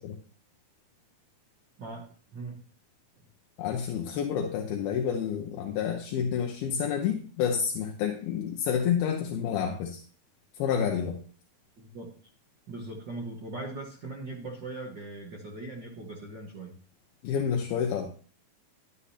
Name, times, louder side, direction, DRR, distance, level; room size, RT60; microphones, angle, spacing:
voice 1, 1.8-2.6 11.8-12.1 12.7-16.7, right 2 dB, 65° right, -2 dB, 1.1 m, -40 dB
voice 2, 3.6-10.0 10.6-11.2 17.2-18.1, left 8 dB, 80° left, 2 dB, 2.8 m, -29 dB
11.5 x 9.8 x 2.9 m, 0.42 s
omnidirectional pair, 4.4 m